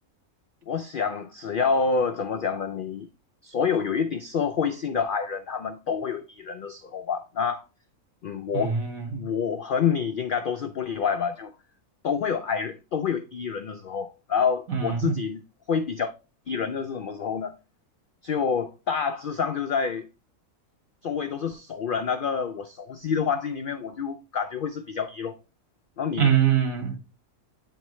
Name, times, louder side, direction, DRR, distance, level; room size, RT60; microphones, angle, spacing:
voice 1, 0.7-3.1 3.4-7.6 8.2-8.8 9.1-11.5 12.0-15.4 15.7-16.1 16.5-17.5 18.2-20.1 21.0-25.4 26.0-26.3, left 6 dB, 80° left, 0.4 m, -28 dB
voice 2, 8.5-9.2 14.7-15.2 26.2-27.0, right 8 dB, 70° right, 2.1 m, -24 dB
9.2 x 3.6 x 3.1 m
omnidirectional pair, 1.5 m